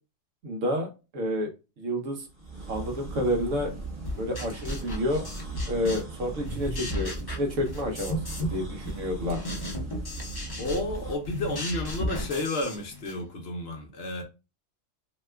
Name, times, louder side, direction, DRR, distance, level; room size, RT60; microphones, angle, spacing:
voice 1, 0.4-1.5 1.8-2.3 2.7-3.7 4.2-5.3 5.7-9.4, left 1 dB, 75° right, 1.1 m, -29 dB
sound 1, 2.3-11.2, right 3 dB, 25° right, 0.8 m, -38 dB
sound 2, 4.0-6.2 6.4-8.6 8.8-13.2, left 1 dB, 25° left, 0.5 m, -34 dB
voice 2, 10.6-14.2, left 2 dB, 60° left, 0.8 m, -31 dB
2.8 x 2.3 x 3.3 m
omnidirectional pair, 1.3 m